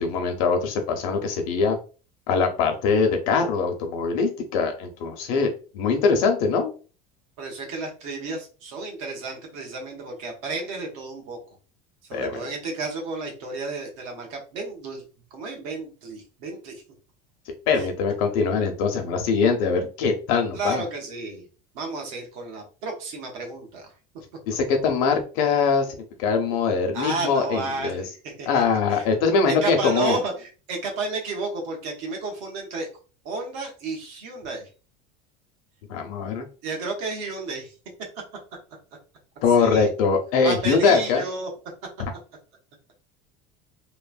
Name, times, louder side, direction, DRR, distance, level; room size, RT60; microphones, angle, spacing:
voice 1, 0.0-1.8 2.3-6.7 12.1-12.4 17.7-20.8 24.5-28.0 28.5-30.2 35.9-36.5 39.4-41.2 42.0-42.1, left 5 dB, 70° left, 4 dB, 0.7 m, -22 dB
voice 2, 7.4-11.4 12.1-15.0 15.3-16.8 17.7-17.9 20.5-21.5 21.7-23.9 26.9-28.6 28.9-29.0 29.5-32.9 33.2-34.7 36.6-37.7 39.6-39.9 40.4-41.5, right 3 dB, 65° right, 1 dB, 1.0 m, -32 dB
3.1 x 2.1 x 2.4 m, 0.36 s
cardioid pair, 180°, 19 cm